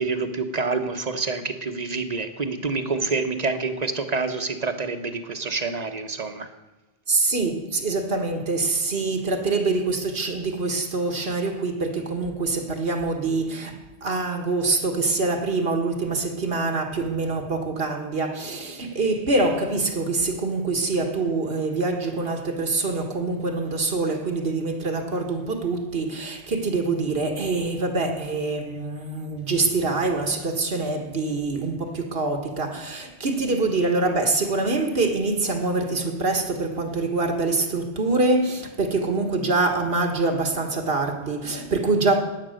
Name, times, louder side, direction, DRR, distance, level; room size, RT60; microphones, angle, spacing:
voice 1, 0.0-6.5, right 4 dB, 40° right, 1.3 m, -27 dB
voice 2, 7.1-42.2, right 3 dB, 70° right, 1.8 m, -25 dB
16.0 x 10.5 x 6.6 m
omnidirectional pair, 1.0 m